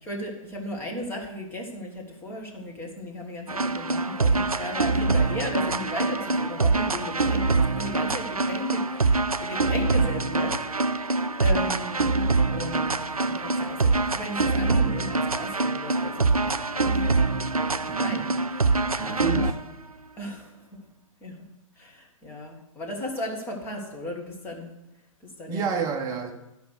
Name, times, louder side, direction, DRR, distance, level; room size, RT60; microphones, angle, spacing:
voice 1, 0.0-10.6 11.4-12.1 12.5-17.0 17.5-19.5 20.2-20.8 21.2-21.4 21.7-24.7 25.2-25.8, left 1 dB, 10° left, -1 dB, 1.6 m, -36 dB
sound 1, 3.5-19.6, right 3 dB, 90° right, 0.4 m, -24 dB
voice 2, 17.9-18.3 19.0-19.6 25.5-26.3, right 6 dB, 20° right, 5 dB, 0.8 m, -29 dB
11.0 x 5.3 x 6.4 m, 0.89 s
figure-of-eight pair, 120°, 18 cm